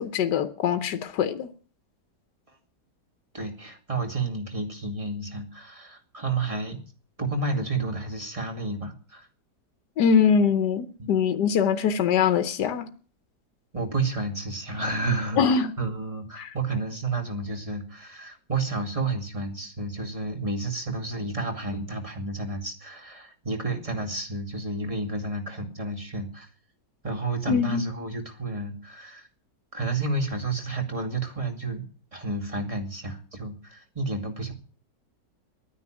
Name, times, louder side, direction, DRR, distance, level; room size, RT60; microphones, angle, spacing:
voice 1, 0.0-1.5 10.0-12.9 15.4-15.7 16.4-16.5 27.5-27.8, left 7 dB, 75° left, 1.5 m, -23 dB
voice 2, 3.3-6.8 7.2-9.3 11.0-11.1 13.7-26.5 27.0-29.3 29.7-31.8 32.1-34.5, right 3 dB, 20° right, 2.5 m, -31 dB
11.5 x 9.7 x 9.0 m
omnidirectional pair, 1.9 m